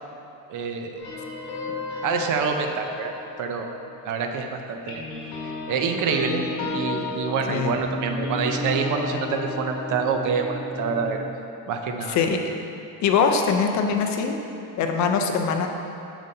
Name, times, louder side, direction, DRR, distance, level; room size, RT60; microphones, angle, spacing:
voice 1, 0.5-1.0 1.9-3.1 3.4-3.7 4.0-5.0 5.7-6.4 6.7-11.2 11.7-12.2, right 5 dB, 55° right, 4 dB, 0.7 m, -26 dB
sound 1, 1.0-4.4 4.8-11.3, left 3 dB, 70° left, 1.6 m, -33 dB
voice 2, 13.0-14.4 14.8-15.7, left 6 dB, 50° left, 4 dB, 0.6 m, -22 dB
8.9 x 6.9 x 2.7 m, 2.9 s
cardioid pair, 175°, 37 cm